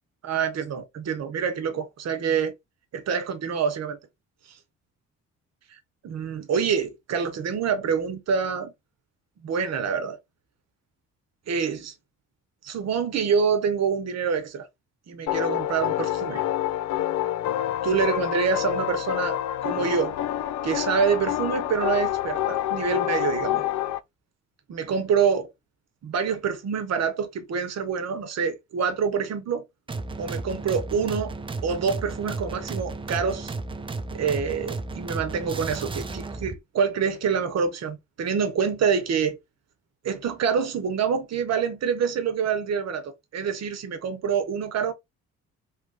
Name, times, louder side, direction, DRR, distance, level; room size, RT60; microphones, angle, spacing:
voice 1, 0.2-2.5 2.9-4.0 5.7-5.8 6.0-8.7 9.4-10.2 11.5-11.9 12.6-14.7 15.1-16.4 17.8-19.4 19.6-20.2 20.6-23.6 24.7-25.5 26.0-29.7 30.2-31.3 31.6-33.5 34.1-39.4 40.0-44.9, right 6 dB, 60° right, 1.0 m, -26 dB
sound 1, 15.3-24.0, left 12 dB, 70° left, 0.4 m, -27 dB
sound 2, 29.9-36.6, right 3 dB, 15° right, 0.5 m, -34 dB
3.2 x 2.4 x 3.2 m
cardioid pair, 90°, 30 cm